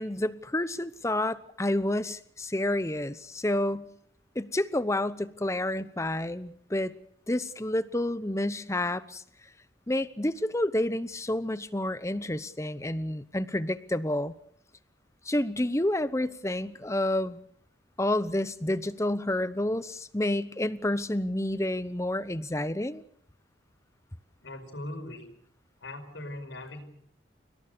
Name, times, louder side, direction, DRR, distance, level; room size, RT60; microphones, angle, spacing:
voice 1, 0.0-3.9 4.3-6.9 7.3-9.2 9.9-14.3 15.2-17.4 18.0-23.0, left 1 dB, 15° left, 14 dB, 0.9 m, -29 dB
voice 2, 24.4-25.3 25.8-26.8, left 1 dB, 90° left, 7 dB, 5.3 m, -40 dB
29.0 x 18.0 x 6.7 m, 0.65 s
head